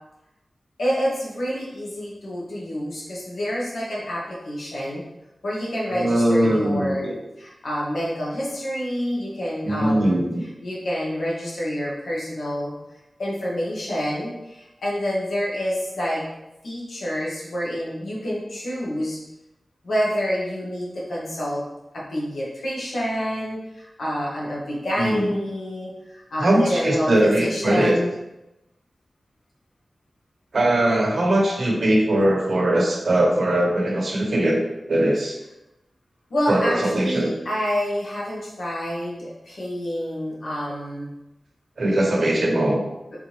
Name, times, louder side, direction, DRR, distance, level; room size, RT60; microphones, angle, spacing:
voice 1, 0.8-5.0 5.4-7.1 7.4-10.2 10.6-12.7 13.2-16.2 16.6-19.2 19.8-21.6 21.9-28.1 36.3-41.1, equal, 90° left, -6 dB, 1.6 m, -27 dB
voice 2, 5.9-7.1 9.6-10.4 25.0-25.2 26.4-27.9 30.5-34.6 34.9-35.4 36.5-37.3 41.8-42.8, right 1 dB, 65° right, -2 dB, 1.1 m, -20 dB
4.4 x 3.8 x 3.0 m, 0.93 s
wide cardioid pair, 115°, 0 cm